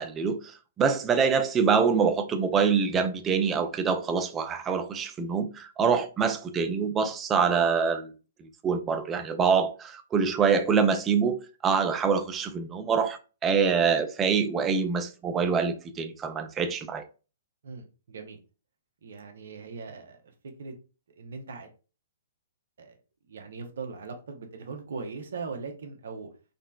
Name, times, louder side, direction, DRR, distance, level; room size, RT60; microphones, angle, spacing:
voice 1, 0.0-8.1 8.4-17.0, right 6 dB, 20° right, 0.4 m, -25 dB
voice 2, 17.6-18.4 19.0-20.3 20.6-20.7 21.2-21.7 22.8-23.0 23.3-26.3, right 4 dB, 70° right, 0.7 m, -40 dB
3.8 x 2.1 x 2.2 m
hypercardioid pair, 125°, 0 cm